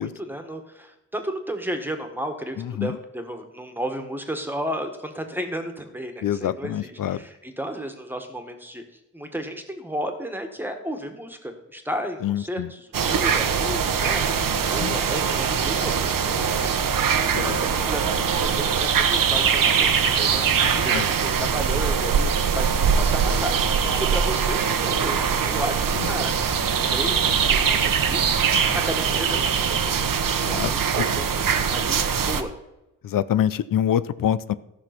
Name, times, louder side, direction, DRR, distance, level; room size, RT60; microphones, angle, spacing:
voice 1, 0.0-8.8 9.1-20.4 20.8-30.2 30.5-31.5 31.7-32.0 32.3-32.5, equal, 5° right, 5 dB, 1.5 m, -33 dB
voice 2, 2.6-3.0 6.2-7.2 12.2-12.7 14.8-15.0 17.3-17.6 20.7-21.0 26.0-26.1 28.5-28.8 30.4-30.7 31.0-31.1 33.0-34.5, left 10 dB, 90° left, 15 dB, 0.5 m, -26 dB
sound 1, 12.9-32.4, right 6 dB, 85° right, 1.0 m, -22 dB
14.0 x 6.2 x 5.9 m, 0.93 s
wide cardioid pair, 125°, 32 cm